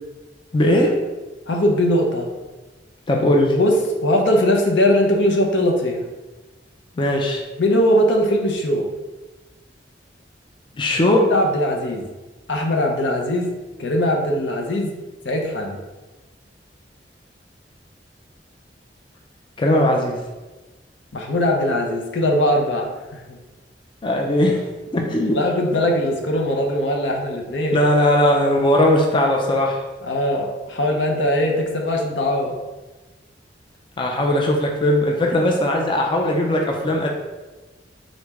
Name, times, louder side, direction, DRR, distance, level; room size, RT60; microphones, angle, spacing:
voice 1, 0.5-1.0 3.1-3.5 7.0-7.4 10.8-11.3 19.6-20.2 24.0-24.7 24.9-25.4 27.7-29.8 34.0-37.1, left 1 dB, 25° left, 1 dB, 0.4 m, -18 dB
voice 2, 1.5-2.3 3.5-6.0 7.6-8.9 11.2-12.1 12.5-13.5 13.8-14.9 15.2-15.8 21.1-23.4 25.3-27.8 30.0-32.6, left 1 dB, 80° left, 2 dB, 0.7 m, -20 dB
3.8 x 3.2 x 3.5 m, 1.2 s
head